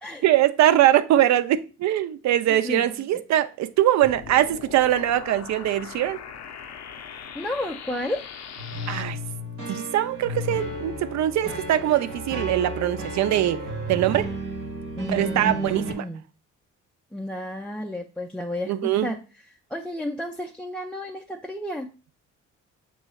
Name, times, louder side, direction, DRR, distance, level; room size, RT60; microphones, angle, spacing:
voice 1, 0.2-6.2 8.9-9.2 9.7-13.6 13.9-14.3 15.1-16.0 18.7-19.1, right 12 dB, 65° right, 0.4 m, -22 dB
voice 2, 2.6-3.1 7.3-8.2 15.0-16.2 17.1-19.2 19.5-21.9, left 1 dB, 5° left, 0.4 m, -32 dB
sound 1, 4.0-9.0, left 7 dB, 65° left, 0.5 m, -40 dB
sound 2, 8.6-15.9, right 1 dB, 90° right, 1.3 m, -33 dB
6.9 x 3.1 x 2.3 m
cardioid pair, 90°, 30 cm